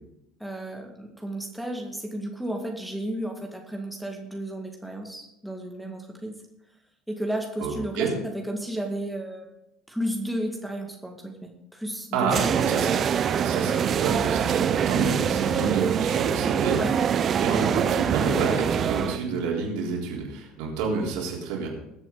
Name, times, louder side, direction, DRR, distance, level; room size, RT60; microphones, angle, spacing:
voice 1, 0.4-6.4 7.1-9.5 9.9-12.9 14.9-15.1 16.8-17.3, right 1 dB, ahead, 0 dB, 2.0 m, -33 dB
voice 2, 7.6-8.1 12.1-13.0 13.3-16.8 17.4-21.7, right 5 dB, 60° right, -2 dB, 3.7 m, -29 dB
sound 1, 12.3-19.2, right 8 dB, 40° right, 0.7 m, -24 dB
21.0 x 8.2 x 4.0 m, 0.84 s
figure-of-eight pair, 65°, 0 cm